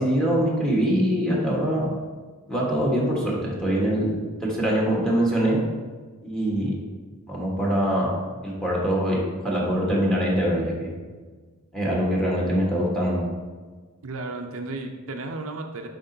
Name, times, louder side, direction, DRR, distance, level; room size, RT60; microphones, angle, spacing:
voice 1, 0.0-1.9 2.5-5.6 6.2-6.8 7.3-8.2 8.4-10.9 11.7-13.2, equal, 5° left, -4 dB, 1.3 m, -23 dB
voice 2, 14.0-15.9, right 2 dB, 65° right, 4 dB, 0.5 m, -33 dB
7.2 x 5.0 x 2.7 m, 1.4 s
head